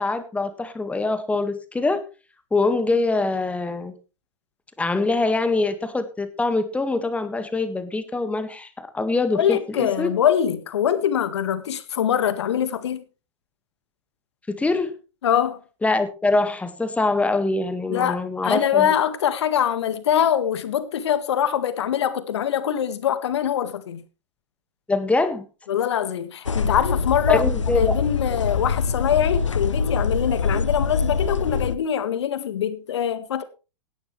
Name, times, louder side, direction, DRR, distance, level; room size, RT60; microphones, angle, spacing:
voice 1, 0.0-2.0 2.5-3.9 4.8-10.1 14.5-14.9 15.8-18.9 24.9-25.4 27.3-28.0, left 3 dB, 10° left, 1.8 m, -24 dB
voice 2, 9.4-13.0 15.2-15.6 17.9-24.0 25.7-27.4 27.7-33.4, left 9 dB, 60° left, 1.8 m, -23 dB
sound 1, 26.5-31.8, left 5 dB, 80° left, 0.9 m, -24 dB
17.0 x 11.0 x 3.3 m
figure-of-eight pair, 100°, 16 cm